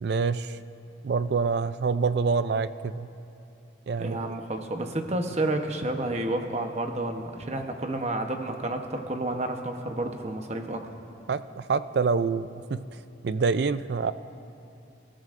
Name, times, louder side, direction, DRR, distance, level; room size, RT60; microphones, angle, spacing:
voice 1, 0.0-0.6 1.0-3.1 3.9-4.4 11.3-12.8 13.2-14.1, right 5 dB, 55° right, 13 dB, 0.4 m, -26 dB
voice 2, 4.0-10.8, right 1 dB, 35° right, 4 dB, 0.9 m, -30 dB
27.0 x 14.0 x 2.5 m, 2.7 s
head